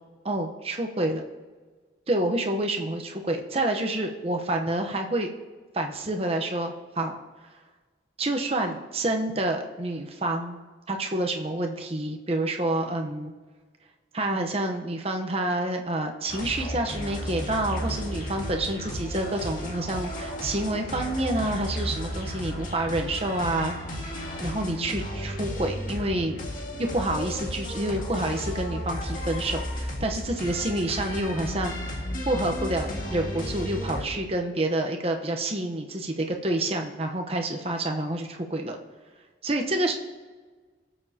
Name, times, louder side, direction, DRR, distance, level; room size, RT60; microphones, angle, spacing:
voice 1, 0.2-1.2 2.1-5.3 5.7-7.2 8.2-10.6 10.9-13.3 14.1-23.7 24.4-26.4 26.8-32.0 32.2-38.8 39.4-39.9, right 1 dB, 35° right, 3 dB, 1.0 m, -28 dB
sound 1, 16.3-34.1, equal, 50° left, 1.9 m, -33 dB
18.5 x 7.0 x 2.9 m, 1.4 s
head